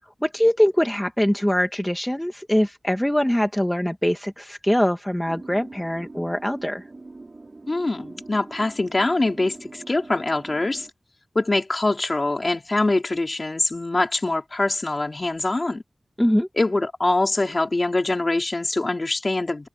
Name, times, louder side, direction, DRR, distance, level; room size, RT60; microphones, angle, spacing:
voice 1, 0.2-6.8 16.2-16.5, equal, 5° left, 1.4 m, -22 dB
sound 1, 5.3-10.9, right 3 dB, 50° right, 6.0 m, -43 dB
voice 2, 7.7-10.9 11.3-15.8 16.6-19.7, left 2 dB, 40° left, 4.0 m, -24 dB
open air
wide cardioid pair, 70°, 0 cm